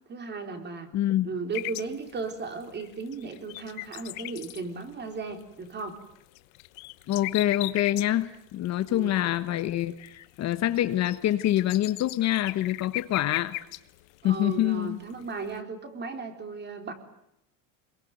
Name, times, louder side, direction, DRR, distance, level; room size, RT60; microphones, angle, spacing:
voice 1, 0.1-0.9 1.2-6.0 8.9-9.1 14.2-16.9, right 4 dB, 25° right, 6 dB, 4.2 m, -36 dB
voice 2, 0.9-1.3 7.1-13.6 14.2-15.0, left 13 dB, 40° left, 12 dB, 1.2 m, -26 dB
sound 1, 1.5-15.6, left 23 dB, 80° left, 1.2 m, -39 dB
26.0 x 22.5 x 9.3 m, 0.82 s
cardioid pair, 140°, 40 cm